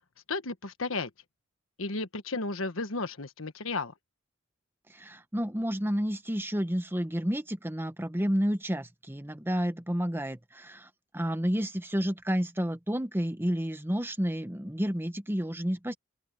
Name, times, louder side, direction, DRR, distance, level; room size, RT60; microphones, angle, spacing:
voice 1, 0.3-1.1 1.8-3.9, left 3 dB, 90° left, 1.4 m, -33 dB
voice 2, 4.9-15.9, equal, 10° right, 1.3 m, -30 dB
open air
head